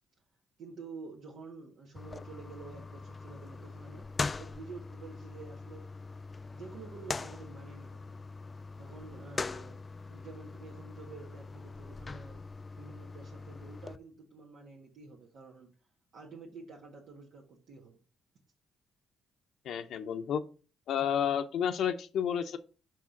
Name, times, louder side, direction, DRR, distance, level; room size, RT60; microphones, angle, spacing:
voice 1, 0.6-4.1 4.4-5.9 6.5-8.2 8.8-9.8 10.1-12.4 12.8-15.7 16.1-18.0, right 4 dB, 70° right, -2 dB, 1.6 m, -49 dB
sound 1, 1.9-14.0, left 3 dB, 30° left, 0.4 m, -42 dB
voice 2, 19.6-20.4 20.9-22.6, left 8 dB, 75° left, 6 dB, 0.7 m, -31 dB
5.6 x 4.8 x 5.7 m, 0.36 s
cardioid pair, 90°, 0 cm